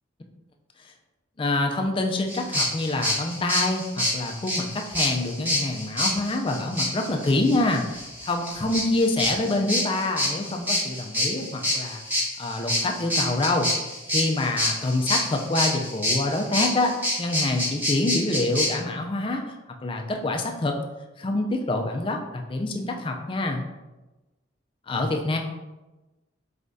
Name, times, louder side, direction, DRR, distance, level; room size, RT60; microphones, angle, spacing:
voice 1, 1.4-13.7 14.1-19.5 19.8-20.8 21.2-23.6 24.9-25.4, left 2 dB, 30° left, 3 dB, 0.4 m, -26 dB
sound 1, 2.3-18.7, left 1 dB, 10° right, 1.0 m, -27 dB
4.2 x 3.5 x 2.6 m, 1.1 s
head